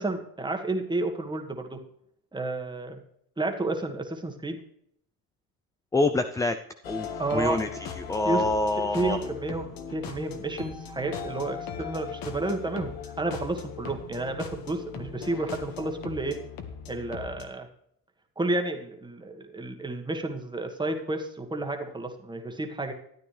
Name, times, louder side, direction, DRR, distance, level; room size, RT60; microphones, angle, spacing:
voice 1, 0.0-1.8 2.3-3.0 3.4-4.6 7.2-7.6 8.2-8.4 8.9-16.4 16.9-17.7 18.4-22.9, right 2 dB, 10° right, 4 dB, 1.5 m, -31 dB
voice 2, 5.9-6.6 6.9-7.7 8.0-9.2, left 2 dB, 10° left, 8 dB, 0.4 m, -26 dB
sound 1, 6.8-17.5, left 7 dB, 55° left, 1.6 m, -39 dB
13.0 x 9.2 x 3.3 m, 0.70 s
cardioid pair, 120°, 41 cm